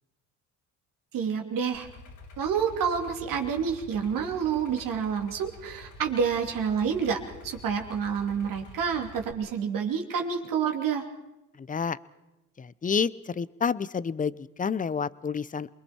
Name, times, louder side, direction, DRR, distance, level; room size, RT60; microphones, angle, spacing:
voice 1, 1.1-1.9 2.4-7.2 7.4-11.0, right 7 dB, 65° right, 3 dB, 2.9 m, -28 dB
Idling, 1.7-9.3, left 3 dB, 60° left, 3.2 m, -48 dB
voice 2, 11.6-12.0 12.6-15.7, left 6 dB, 25° left, 19 dB, 0.7 m, -29 dB
28.0 x 21.5 x 4.4 m, 0.99 s
supercardioid pair, 75°, 35 cm